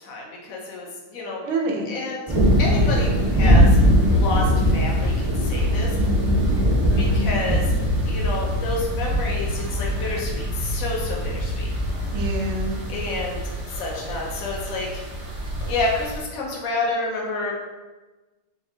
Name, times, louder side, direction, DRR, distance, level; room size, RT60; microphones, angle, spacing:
voice 1, 0.0-1.5 1.9-2.2 2.6-3.8 4.2-6.0 7.0-7.7 8.0-11.7 12.9-13.4 13.7-15.0 15.7-17.5, left 2 dB, 80° left, -2 dB, 0.7 m, -29 dB
voice 2, 1.4-1.9 6.0-6.6 6.9-7.3 12.1-12.7, right 1 dB, 70° right, 0 dB, 1.2 m, -28 dB
sound 1, 2.3-16.2, equal, 40° right, 0.4 m, -22 dB
4.9 x 2.5 x 2.7 m, 1.2 s
omnidirectional pair, 2.3 m